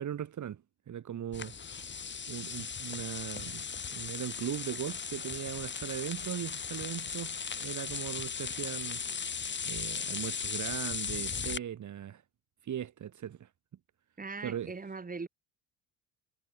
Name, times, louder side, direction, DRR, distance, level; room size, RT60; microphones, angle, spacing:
voice 1, 0.0-1.5 2.3-9.0 9.6-12.2 12.6-13.5 14.4-14.8, right 10 dB, 45° right, 4.2 m, -39 dB
sound 1, 1.3-11.6, left 6 dB, 25° left, 2.1 m, -37 dB
voice 2, 14.2-15.3, right 4 dB, 20° right, 6.6 m, -40 dB
supercardioid pair, 90°, 41 cm